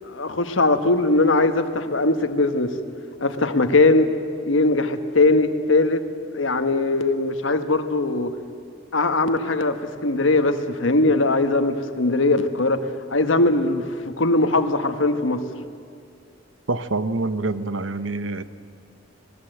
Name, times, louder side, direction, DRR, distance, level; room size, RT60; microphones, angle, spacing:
voice 1, 0.0-2.7 3.2-4.1 4.4-6.0 6.3-8.3 8.9-12.8 13.1-15.4, left 2 dB, 90° left, 8 dB, 1.5 m, -20 dB
voice 2, 16.7-18.4, right 2 dB, 90° right, 12 dB, 1.1 m, -26 dB
26.5 x 20.0 x 8.0 m, 2.3 s
head